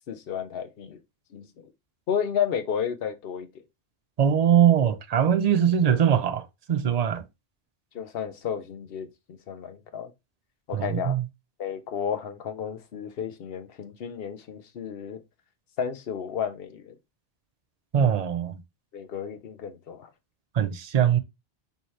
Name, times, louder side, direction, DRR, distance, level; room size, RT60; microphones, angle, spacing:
voice 1, 0.1-1.0 1.3-1.5 2.1-3.5 7.9-10.1 10.7-11.2 11.6-15.2 15.8-17.0 18.9-20.1, left 8 dB, 60° left, 0.9 m, -32 dB
voice 2, 4.2-7.2 10.7-11.2 17.9-18.6 20.5-21.2, right 9 dB, 50° right, 0.5 m, -22 dB
5.5 x 2.9 x 3.1 m
omnidirectional pair, 1.2 m